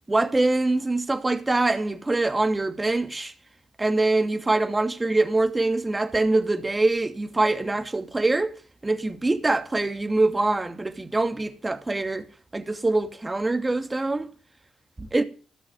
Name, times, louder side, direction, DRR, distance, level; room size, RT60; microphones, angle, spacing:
voice 1, 0.1-3.3 3.8-8.6 8.8-12.3 12.5-14.3 15.0-15.2, right 2 dB, 25° right, 2.6 m, -24 dB
18.5 x 6.3 x 9.3 m
hypercardioid pair, 40°, 0 cm